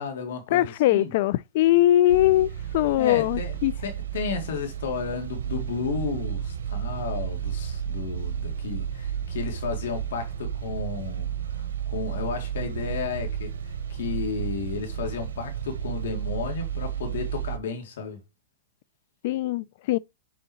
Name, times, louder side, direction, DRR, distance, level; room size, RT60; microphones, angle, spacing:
voice 1, 0.0-1.1 3.0-3.6 3.8-18.2, left 5 dB, 75° left, 2.6 m, -33 dB
voice 2, 0.5-3.7 19.2-20.0, left 14 dB, 55° left, 0.4 m, -21 dB
sound 1, 2.1-17.6, right 9 dB, 85° right, 0.9 m, -32 dB
7.3 x 3.8 x 4.3 m
hypercardioid pair, 130°, 0 cm